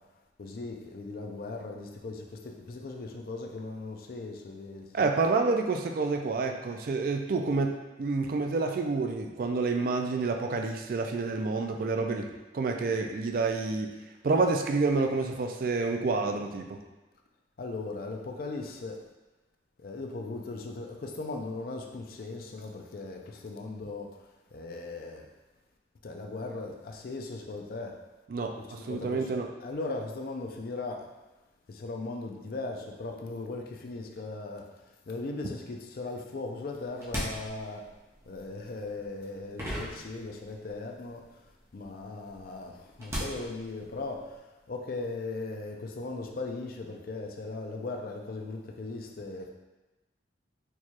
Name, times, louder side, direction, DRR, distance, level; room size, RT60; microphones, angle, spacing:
voice 1, 0.4-5.1 17.6-19.0 19.8-24.2 24.5-25.3 26.0-28.0 28.5-29.3 29.6-31.1 31.7-34.7 35.1-37.9 38.3-41.4 41.7-49.5, left 3 dB, 55° left, 2 dB, 0.4 m, -38 dB
voice 2, 4.9-12.3 12.5-13.9 14.2-16.8 28.3-29.5, right 3 dB, 50° right, 4 dB, 0.3 m, -28 dB
sound 1, 36.7-40.8 41.1-44.3, equal, 15° right, 0.7 m, -39 dB
4.5 x 2.3 x 2.9 m, 1.1 s
head